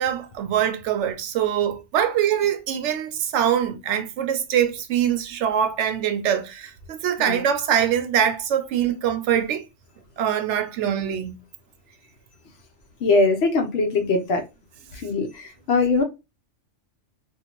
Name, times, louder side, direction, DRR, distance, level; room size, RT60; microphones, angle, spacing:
voice 1, 0.0-9.6 10.2-11.4, right 9 dB, 75° right, 0.9 m, -23 dB
voice 2, 13.0-14.4 14.9-16.0, left 3 dB, 65° left, 0.8 m, -21 dB
2.6 x 2.4 x 2.8 m
omnidirectional pair, 1.2 m